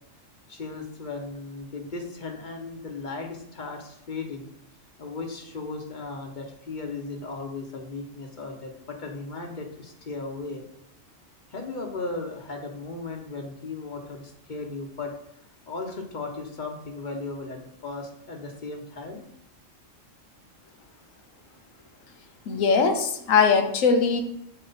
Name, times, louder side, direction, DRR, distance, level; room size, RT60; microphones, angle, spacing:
voice 1, 0.5-4.5 5.0-10.6 11.5-15.1 15.7-19.2, left 3 dB, 40° left, 2 dB, 1.0 m, -36 dB
voice 2, 22.5-24.2, left 5 dB, 85° left, 6 dB, 1.2 m, -21 dB
5.9 x 4.5 x 4.0 m, 0.74 s
omnidirectional pair, 1.3 m